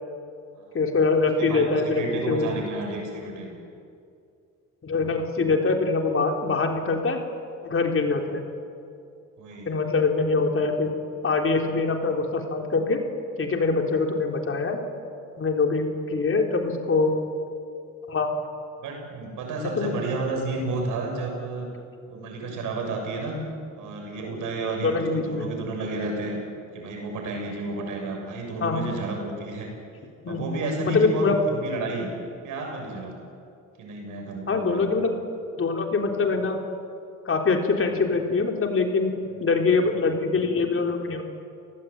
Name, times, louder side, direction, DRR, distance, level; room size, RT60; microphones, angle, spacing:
voice 1, 0.7-2.5 4.8-7.2 7.6-8.5 9.7-10.9 11.2-13.0 13.4-14.8 15.4-17.1 18.1-18.3 19.8-20.0 24.8-25.5 28.6-28.8 30.2-30.4 30.8-31.4 34.5-35.1 35.6-36.6 37.3-41.2, left 4 dB, 45° left, 3 dB, 3.8 m, -24 dB
voice 2, 1.4-3.6 9.4-9.7 18.8-21.7 22.1-23.4 23.8-26.4 26.7-29.7 30.3-32.1 32.4-33.1 33.8-35.2 39.4-39.5, right 2 dB, 85° right, 2 dB, 6.8 m, -31 dB
29.5 x 19.0 x 9.0 m, 2.5 s
cardioid pair, 90°, 30 cm